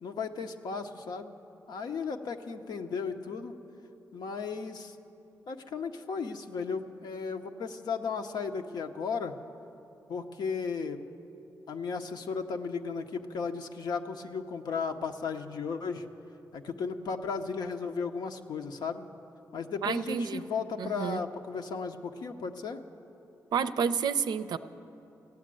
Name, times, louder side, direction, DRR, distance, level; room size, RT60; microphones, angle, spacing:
voice 1, 0.0-1.3 1.7-3.5 4.1-5.0 5.5-9.4 10.1-11.0 11.7-16.1 16.5-19.0 19.5-22.8, left 5 dB, 80° left, 6 dB, 0.7 m, -35 dB
voice 2, 19.8-20.4 20.8-21.2 23.5-24.6, right 6 dB, 80° right, 11 dB, 0.5 m, -29 dB
15.0 x 9.3 x 7.6 m, 2.9 s
cardioid pair, 60°, 7 cm